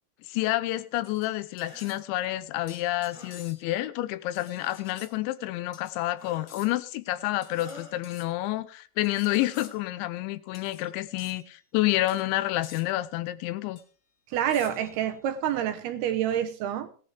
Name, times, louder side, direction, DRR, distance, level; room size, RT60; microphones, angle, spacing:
voice 1, 0.2-13.8, left 16 dB, 90° left, 3.1 m, -29 dB
sound 1, 1.0-2.1 2.7-3.8 4.3-5.1 5.7-6.0 6.5-6.9 7.4-8.3 9.0-9.8 10.5-10.9 11.2-11.4 12.1-12.3 12.6-12.9 13.8-13.9 14.5-15.0, left 7 dB, 70° left, 1.5 m, -50 dB
sound 2, 1.6-2.0 3.1-3.4 4.6-5.1 6.2-6.7 7.5-8.0 9.2-9.9, left 3 dB, 40° left, 4.6 m, -48 dB
voice 2, 14.3-16.9, right 10 dB, 75° right, 2.6 m, -27 dB
18.0 x 10.5 x 3.4 m
omnidirectional pair, 5.2 m